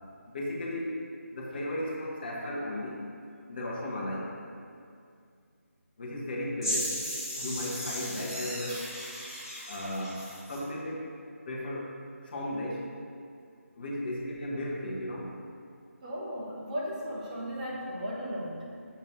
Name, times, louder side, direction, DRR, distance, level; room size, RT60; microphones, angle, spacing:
voice 1, 0.3-1.0 1.3-3.0 3.5-4.3 6.0-7.0 7.4-8.9 9.7-10.2 10.5-11.0 11.5-11.9 12.2-12.9 13.7-15.3, left 1 dB, 40° left, -4 dB, 1.1 m, -35 dB
sound 1, 6.6-10.6, equal, ahead, 1.2 m, -36 dB
voice 2, 16.0-18.6, equal, 30° right, -5 dB, 1.0 m, -36 dB
7.0 x 3.0 x 6.0 m, 2.3 s
figure-of-eight pair, 160°, 8 cm